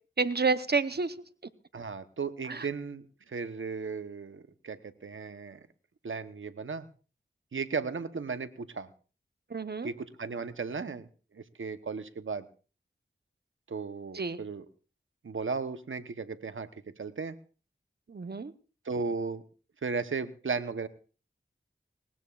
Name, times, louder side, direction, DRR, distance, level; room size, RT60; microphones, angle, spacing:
voice 1, 0.2-1.1 2.5-2.6 9.5-9.9 14.1-14.4 18.1-18.5, right 4 dB, 55° right, 12 dB, 0.9 m, -29 dB
voice 2, 1.7-5.6 6.0-6.9 7.5-8.9 9.8-11.1 11.3-12.4 13.7-14.7 15.2-17.4 18.8-19.4 19.8-20.9, right 4 dB, 80° right, 11 dB, 0.9 m, -35 dB
19.5 x 19.0 x 2.4 m, 0.37 s
cardioid pair, 40°, 20 cm